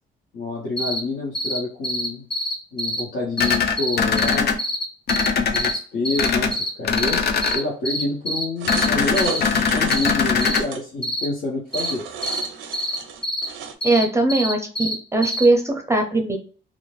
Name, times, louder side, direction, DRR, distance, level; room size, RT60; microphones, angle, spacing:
voice 1, 0.3-2.2 2.7-4.5 5.4-12.1, left 2 dB, 85° left, -6 dB, 0.9 m, -28 dB
sound 1, 0.8-1.0 1.3-1.6 1.8-3.0 3.4-5.3 5.5-5.8 6.0-6.7 7.0-7.1 7.4-7.6 7.8-8.9 9.1-9.4 9.9-10.1 10.4-10.6 11.0-11.3 11.7-11.9 12.2-12.4 12.7-13.0 13.2-13.5 13.8-14.9 15.2-15.4, left 1 dB, 25° left, 0.9 m, -25 dB
sound 2, 3.4-4.5 5.1-5.7 6.2-6.5 6.8-7.6 8.7-10.6, left 6 dB, 55° left, 0.5 m, -21 dB
sound 3, 8.6-10.8 11.7-13.8, right 7 dB, 85° right, 0.5 m, -34 dB
voice 2, 13.8-16.4, right 2 dB, 15° right, 3 dB, 0.5 m, -20 dB
2.5 x 2.1 x 3.1 m, 0.41 s
cardioid pair, 90°, 20 cm